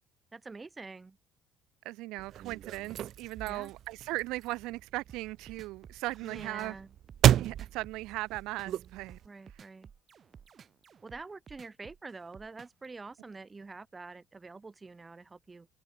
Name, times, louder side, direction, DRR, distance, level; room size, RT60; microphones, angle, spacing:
voice 1, 0.3-1.2 3.5-3.7 6.2-6.9 9.2-9.9 11.0-15.7, right 3 dB, 15° right, 3.4 m, -46 dB
voice 2, 1.8-6.7 7.4-9.2, right 19 dB, 90° right, 0.5 m, -38 dB
sound 1, 2.2-9.3, right 11 dB, 45° right, 1.1 m, -32 dB
sound 2, 5.1-12.9, right 7 dB, 30° right, 3.7 m, -54 dB
cardioid pair, 170°, 0 cm